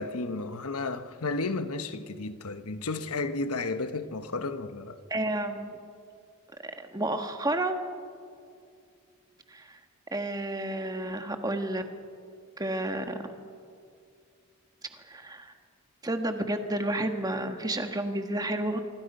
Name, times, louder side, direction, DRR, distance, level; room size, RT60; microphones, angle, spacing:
voice 1, 0.0-5.0, left 3 dB, 85° left, 1.1 m, -33 dB
voice 2, 5.1-5.7 6.6-7.9 9.5-9.8 10.1-11.8 12.6-13.2 15.1-15.5 16.0-18.8, right 1 dB, 15° right, 1.4 m, -31 dB
25.5 x 24.5 x 5.5 m
head